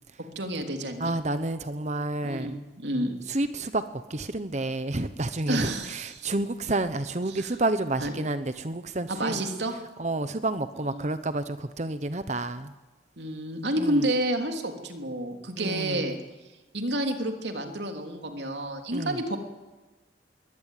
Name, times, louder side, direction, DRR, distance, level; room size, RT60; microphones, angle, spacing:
voice 1, 0.3-1.1 2.2-3.1 5.5-6.2 7.3-7.5 8.0-8.1 9.1-9.7 10.8-11.1 13.2-16.2 16.7-19.4, right 1 dB, 70° right, 4 dB, 3.2 m, -30 dB
voice 2, 1.0-2.6 3.3-3.8 4.1-9.4 10.0-12.7 13.8-14.1 15.6-16.1 18.9-19.2, right 2 dB, 40° right, 11 dB, 1.0 m, -30 dB
22.5 x 18.5 x 9.1 m, 1.2 s
head